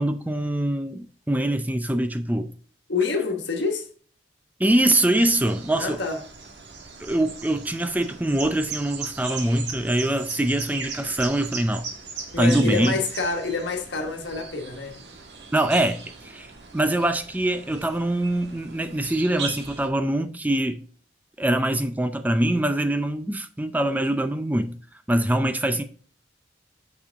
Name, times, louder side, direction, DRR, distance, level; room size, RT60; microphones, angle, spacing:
voice 1, 0.0-2.5 4.6-6.0 7.0-11.8 12.4-12.9 15.5-16.5 16.7-20.8 21.4-24.8 25.1-25.8, right 1 dB, 10° right, 0.4 m, -23 dB
voice 2, 2.9-3.9 5.7-6.2 12.3-15.0 25.4-25.6, left 4 dB, 75° left, 1.4 m, -27 dB
sound 1, 4.7-19.9, right 5 dB, 65° right, 1.6 m, -39 dB
6.3 x 6.0 x 3.4 m
head